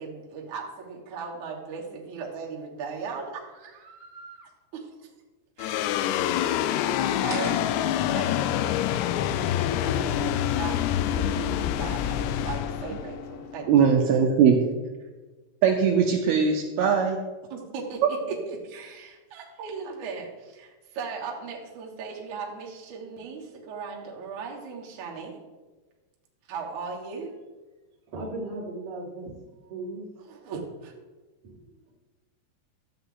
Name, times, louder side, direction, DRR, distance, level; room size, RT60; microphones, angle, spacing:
voice 1, 0.0-5.1 5.6-6.4 7.0-7.7 8.1-8.7 9.6-13.9 17.5-25.3 26.5-27.3 30.3-30.9, right 5 dB, 60° right, -2 dB, 2.2 m, -38 dB
sound 1, 5.6-14.1, left 11 dB, 85° left, 2.6 m, -27 dB
sound 2, 7.3-10.3, equal, 5° right, 0.4 m, -44 dB
voice 2, 13.7-14.6 15.6-17.2, right 6 dB, 80° right, 2 dB, 2.5 m, -20 dB
voice 3, 28.1-29.3 29.7-30.1 31.4-31.6, right 2 dB, 45° right, -3 dB, 2.3 m, -36 dB
13.0 x 7.9 x 3.8 m, 1.3 s
omnidirectional pair, 4.8 m